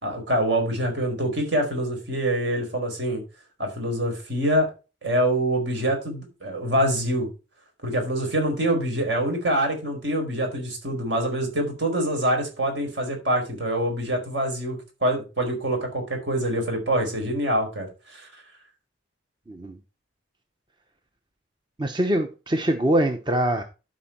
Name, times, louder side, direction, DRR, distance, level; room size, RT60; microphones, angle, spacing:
voice 1, 0.0-3.2 3.6-4.7 5.0-7.3 7.8-18.3, right 1 dB, 65° right, 4.5 m, -25 dB
voice 2, 19.5-19.8 21.8-23.6, right 1 dB, 25° right, 0.7 m, -23 dB
12.5 x 5.3 x 4.3 m
head